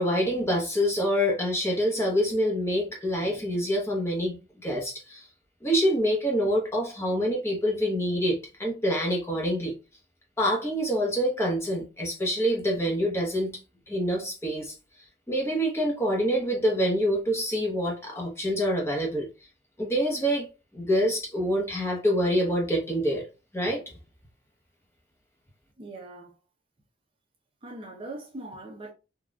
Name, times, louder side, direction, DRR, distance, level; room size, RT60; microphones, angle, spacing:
voice 1, 0.0-4.4 4.6-5.3 5.6-9.7 10.4-13.6 13.9-14.7 15.3-19.3 19.8-20.5 20.7-23.3 23.5-23.8, equal, 15° left, 0.8 m, -26 dB
voice 2, 25.8-26.3 27.6-28.9, right 2 dB, 30° right, 0.6 m, -41 dB
3.9 x 2.3 x 2.3 m
head